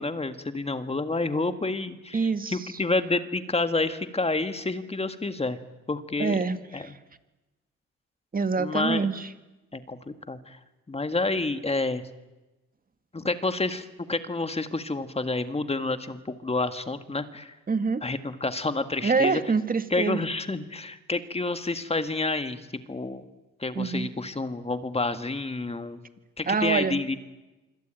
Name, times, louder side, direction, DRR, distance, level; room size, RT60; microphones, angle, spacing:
voice 1, 0.0-5.6 5.9-6.4 6.7-6.9 8.6-9.1 9.7-10.6 10.9-12.0 13.1-17.6 18.0-19.4 19.9-22.6 22.9-23.2 23.6-26.0 26.4-27.2, left 3 dB, 20° left, 10 dB, 1.9 m, -29 dB
voice 2, 2.1-2.8 6.2-7.0 8.3-9.3 17.7-18.0 19.0-20.2 23.7-24.1 26.5-27.0, right 4 dB, 30° right, 10 dB, 2.0 m, -26 dB
26.0 x 24.5 x 9.1 m, 1.1 s
cardioid pair, 90°, 30 cm